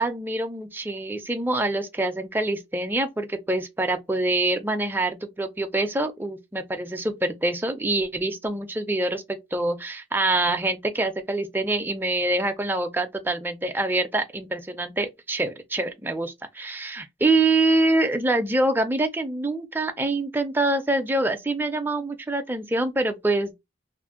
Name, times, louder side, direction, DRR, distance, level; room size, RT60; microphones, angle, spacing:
voice 1, 0.0-23.5, right 2 dB, 10° right, 0.3 m, -25 dB
2.5 x 2.0 x 3.5 m
head